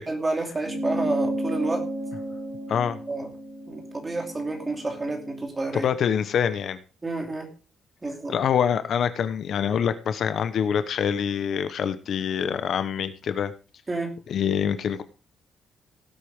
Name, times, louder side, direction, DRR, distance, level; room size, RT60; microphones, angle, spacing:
voice 1, 0.0-1.9 3.1-3.3 3.7-5.9 7.0-7.5 8.0-8.4 13.9-14.2, right 2 dB, 15° right, 3 dB, 2.7 m, -29 dB
sound 1, 0.6-5.4, right 1 dB, 75° right, 6.6 m, -33 dB
voice 2, 5.7-6.8 8.3-13.5 14.3-15.0, left 8 dB, 55° left, 12 dB, 1.0 m, -25 dB
17.5 x 8.3 x 3.6 m, 0.34 s
cardioid pair, 155°, 0 cm